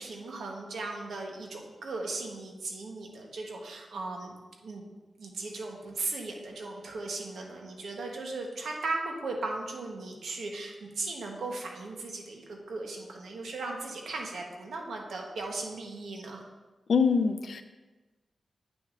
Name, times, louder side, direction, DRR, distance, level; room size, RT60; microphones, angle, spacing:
voice 1, 0.0-4.3 4.6-4.8 5.2-16.4, right 3 dB, 90° right, 1 dB, 1.1 m, -37 dB
voice 2, 16.9-17.6, left 5 dB, 65° left, 9 dB, 0.4 m, -24 dB
8.5 x 6.2 x 2.5 m, 1.2 s
wide cardioid pair, 110°, 0 cm